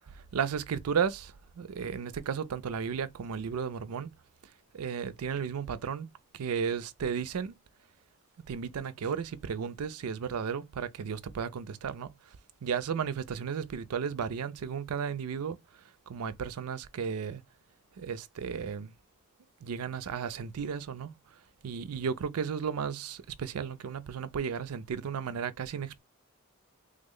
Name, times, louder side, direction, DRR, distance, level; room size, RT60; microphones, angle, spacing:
voice 1, 0.3-4.1 4.7-6.1 6.3-7.5 8.5-12.1 12.6-15.6 16.1-17.4 18.0-18.9 19.6-21.1 21.6-26.0, right 6 dB, 90° right, 0.4 m, -34 dB
3.3 x 2.1 x 3.7 m
head